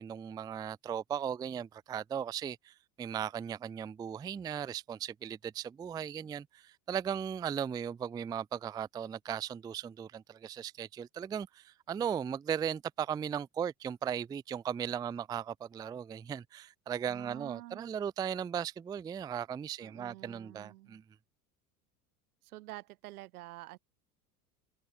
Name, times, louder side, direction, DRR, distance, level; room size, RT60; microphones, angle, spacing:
voice 1, 0.0-21.0, right 8 dB, 10° right, 0.3 m, -37 dB
voice 2, 17.1-17.9 19.8-21.0 22.4-23.8, right 18 dB, 70° right, 1.0 m, -48 dB
figure-of-eight pair, 75°, 47 cm